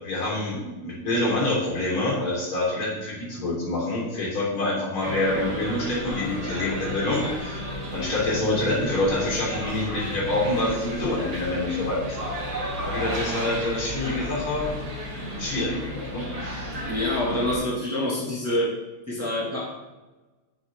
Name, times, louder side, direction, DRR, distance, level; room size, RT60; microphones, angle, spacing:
voice 1, 0.0-7.6 7.9-12.2 12.8-14.8 15.4-16.7, left 2 dB, 70° left, -6 dB, 4.5 m, -26 dB
sound 1, 5.0-17.6, equal, 50° right, 2.7 m, -33 dB
voice 2, 16.9-18.7 19.1-19.7, left 1 dB, 5° right, -6 dB, 2.4 m, -26 dB
8.7 x 8.0 x 4.0 m, 1.2 s
omnidirectional pair, 2.4 m